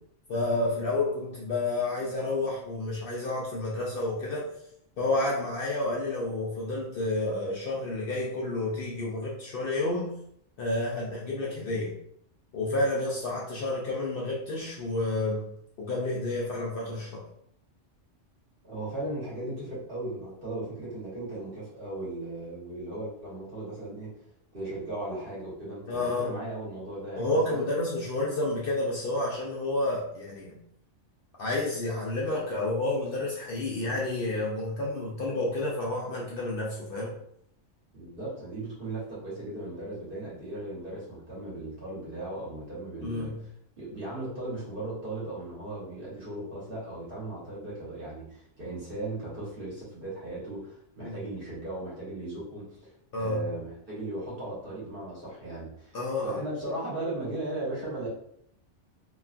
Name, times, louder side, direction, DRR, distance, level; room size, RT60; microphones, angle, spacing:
voice 1, 0.3-4.5 5.0-10.1 10.6-11.9 12.5-15.5 15.8-17.2 25.9-26.3 27.2-30.6 31.4-37.1 43.0-43.4 51.0-51.2 53.1-53.4 55.9-56.4, left 2 dB, 60° left, -4 dB, 0.6 m, -30 dB
voice 2, 18.6-24.1 24.5-27.6 37.9-43.3 43.8-56.0 56.2-58.1, right 2 dB, 50° right, -8 dB, 1.3 m, -37 dB
2.9 x 2.3 x 2.4 m, 0.72 s
omnidirectional pair, 1.2 m